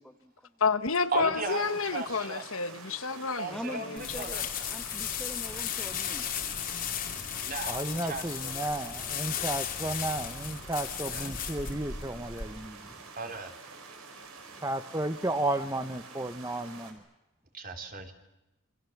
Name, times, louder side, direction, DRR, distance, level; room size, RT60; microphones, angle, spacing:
voice 1, 0.0-0.5 3.5-6.2, equal, ahead, 1.1 m, -43 dB
voice 2, 0.6-4.2, left 5 dB, 70° left, 1.3 m, -30 dB
voice 3, 1.1-2.5 3.4-4.5 7.4-8.7 11.0-11.4 13.2-13.6 17.5-18.1, right 3 dB, 40° right, 3.4 m, -37 dB
sound 1, 1.4-16.9, right 4 dB, 85° right, 5.1 m, -48 dB
sound 2, 4.0-12.4, left 9 dB, 40° left, 2.9 m, -35 dB
voice 4, 7.7-12.8 14.6-17.0, right 1 dB, 15° right, 0.9 m, -33 dB
28.0 x 26.0 x 7.2 m
head